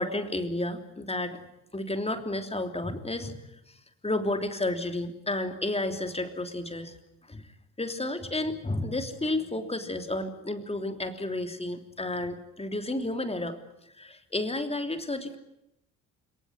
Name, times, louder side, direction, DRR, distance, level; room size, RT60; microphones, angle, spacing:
voice 1, 0.0-1.5 1.7-3.4 3.7-3.8 4.0-6.9 7.3-7.5 7.8-13.6 14.0-15.4, left 2 dB, 15° left, 7 dB, 3.2 m, -31 dB
29.5 x 18.5 x 9.5 m, 0.85 s
figure-of-eight pair, 50°, 45 cm